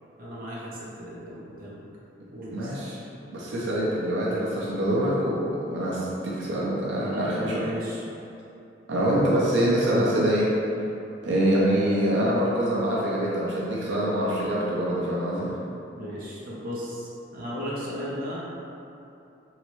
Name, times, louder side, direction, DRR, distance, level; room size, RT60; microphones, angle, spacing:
voice 1, 0.2-1.8 2.3-2.8 6.9-8.0 15.9-18.4, equal, 50° right, -7 dB, 0.7 m, -35 dB
voice 2, 2.5-3.0 3.3-7.7 8.9-10.5 11.2-15.5, right 1 dB, 85° right, -6 dB, 0.6 m, -25 dB
3.1 x 2.8 x 3.0 m, 2.8 s
head